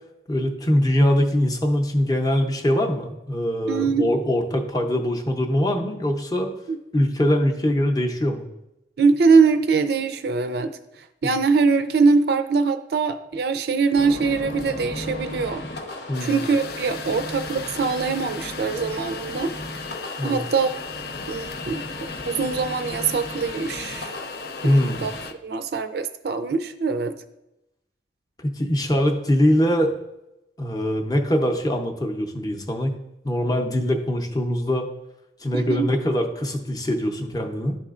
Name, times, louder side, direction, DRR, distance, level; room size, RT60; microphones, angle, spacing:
voice 1, 0.3-6.5 6.9-8.5 11.2-11.3 16.1-16.4 20.2-20.4 24.6-25.0 28.4-29.9 30.6-32.9 33.2-34.9 35.4-37.8, equal, 20° left, 2 dB, 0.6 m, -22 dB
voice 2, 3.7-4.1 6.7-6.8 9.0-10.8 11.2-15.6 16.2-19.5 20.2-20.7 21.3-21.8 22.3-24.2 24.6-25.1 25.4-27.1 35.5-35.9, right 4 dB, 55° right, 9 dB, 0.4 m, -22 dB
sound 1, 14.0-25.3, left 1 dB, 70° left, 1.0 m, -36 dB
sound 2, 16.1-25.3, left 6 dB, 55° left, 0.4 m, -38 dB
11.5 x 4.2 x 2.4 m, 0.91 s
head